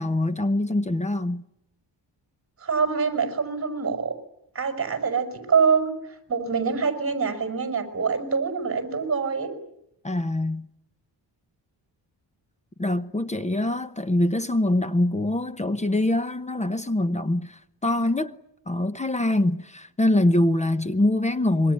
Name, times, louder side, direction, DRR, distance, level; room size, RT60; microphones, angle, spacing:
voice 1, 0.0-1.4 10.0-10.7 12.8-18.4 18.7-21.7, left 1 dB, 15° left, 0.9 m, -24 dB
voice 2, 2.6-4.1 4.5-9.5, right 5 dB, 30° right, 5.4 m, -25 dB
26.0 x 23.5 x 8.4 m
wide cardioid pair, 155°, 43 cm